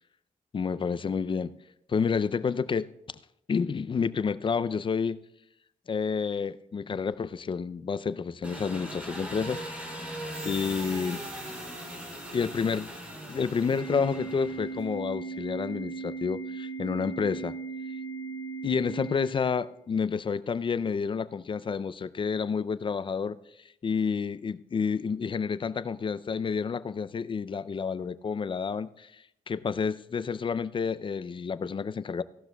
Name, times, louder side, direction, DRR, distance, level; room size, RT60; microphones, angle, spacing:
voice 1, 0.5-1.5 1.9-2.9 3.5-5.2 5.9-9.6 10.4-11.2 12.3-12.9 13.3-17.5 18.6-23.4 23.8-29.1 29.5-32.2, left 5 dB, 35° left, 15 dB, 0.4 m, -29 dB
Engine, 8.4-14.9, equal, 10° right, 2.9 m, -40 dB
sound 1, 10.1-13.8, right 4 dB, 65° right, 2.5 m, -46 dB
Organ, 13.7-19.7, right 4 dB, 40° right, 3.1 m, -37 dB
17.5 x 12.0 x 2.3 m, 0.78 s
wide cardioid pair, 115°, 14 cm